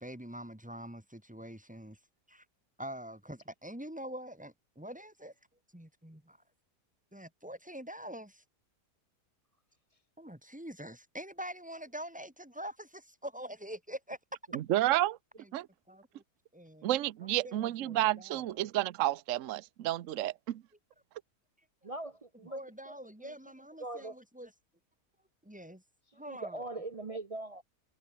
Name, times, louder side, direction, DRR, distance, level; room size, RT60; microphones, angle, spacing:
voice 1, 0.0-2.0 2.3-2.4 2.8-5.3 5.7-6.4 7.1-8.4 10.2-14.2 15.4-15.5 15.9-16.2 16.5-16.9 17.4-18.6 22.5-24.5 25.4-25.8 26.1-26.7, right 1 dB, 5° right, 2.6 m, -45 dB
voice 2, 14.5-15.2 15.5-15.7 16.8-20.6, right 15 dB, 65° right, 1.0 m, -30 dB
voice 3, 21.8-22.6 22.9-23.4 23.8-24.2 26.1-27.6, right 2 dB, 40° right, 0.5 m, -42 dB
omnidirectional pair, 1.6 m